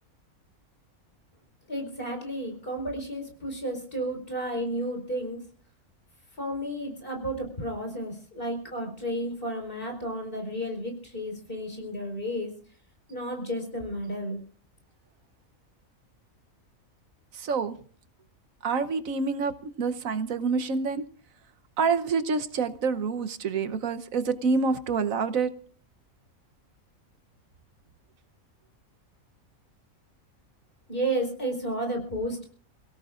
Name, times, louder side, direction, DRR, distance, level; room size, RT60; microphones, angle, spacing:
voice 1, 1.7-5.4 6.4-12.5 13.1-14.4 30.9-32.4, right 1 dB, 40° left, 2 dB, 4.8 m, -32 dB
voice 2, 17.3-17.7 18.6-21.0 21.8-25.5, right 5 dB, 75° right, 10 dB, 1.3 m, -27 dB
29.0 x 17.0 x 2.5 m, 0.43 s
omnidirectional pair, 1.4 m